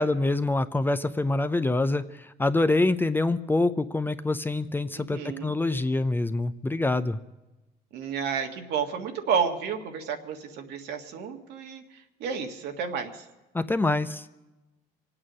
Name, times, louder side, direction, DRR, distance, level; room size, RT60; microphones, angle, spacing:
voice 1, 0.0-7.2 13.5-14.3, left 2 dB, 10° left, 11 dB, 0.5 m, -25 dB
voice 2, 5.0-5.5 7.9-11.8 12.2-13.2, right 6 dB, 80° right, 4 dB, 1.8 m, -31 dB
25.0 x 8.8 x 6.3 m, 1.0 s
cardioid pair, 110°, 17 cm